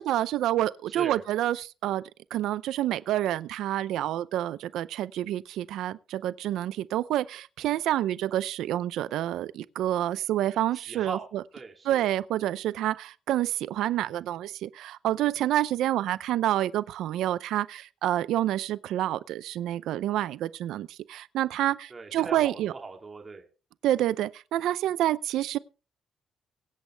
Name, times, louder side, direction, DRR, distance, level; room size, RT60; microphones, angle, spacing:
voice 1, 0.0-2.0 2.3-11.4 11.9-22.7 23.8-25.6, right 13 dB, 85° right, 0.5 m, -28 dB
voice 2, 0.9-1.2 10.7-11.3 11.5-12.1 21.9-23.5, right 3 dB, 30° right, 2.9 m, -40 dB
23.5 x 8.2 x 3.4 m
cardioid pair, 90°, 0 cm